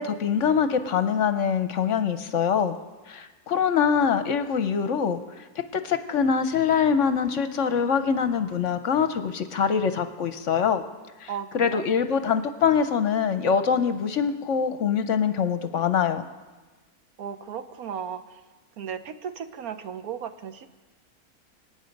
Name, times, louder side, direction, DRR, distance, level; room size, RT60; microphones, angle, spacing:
voice 1, 0.0-2.7 3.1-10.8 11.2-16.2, left 7 dB, 60° left, 10 dB, 1.0 m, -24 dB
voice 2, 11.3-11.8 17.2-18.4 18.8-20.7, right 8 dB, 70° right, 10 dB, 1.2 m, -35 dB
26.0 x 9.1 x 5.2 m, 1.2 s
omnidirectional pair, 1.6 m